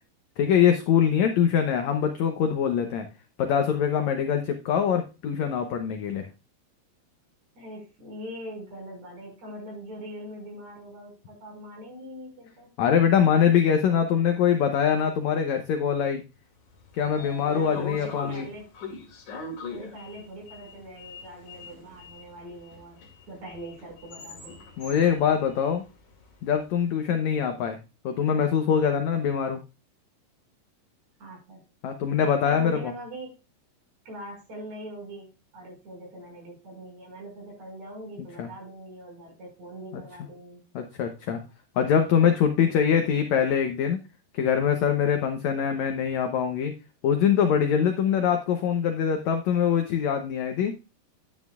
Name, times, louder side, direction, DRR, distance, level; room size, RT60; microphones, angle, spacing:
voice 1, 0.4-3.1 3.4-6.2 12.8-16.2 16.9-18.5 24.8-25.8 26.4-27.8 28.0-29.6 31.8-32.9 38.4-38.5 40.7-41.4 41.8-44.0 44.3-46.7 47.0-50.7, left 8 dB, 75° left, 6 dB, 1.7 m, -23 dB
voice 2, 7.6-12.7 17.5-18.7 19.7-23.0 23.3-24.6 27.3-27.4 29.1-29.2 31.2-31.6 32.4-33.3 34.1-35.3 35.5-40.6 41.8-41.9 42.6-42.7, right 1 dB, 50° right, -1 dB, 6.4 m, -42 dB
Sliding door, 16.6-26.7, left 4 dB, 55° left, 3.1 m, -42 dB
11.0 x 9.4 x 2.4 m, 0.30 s
omnidirectional pair, 4.2 m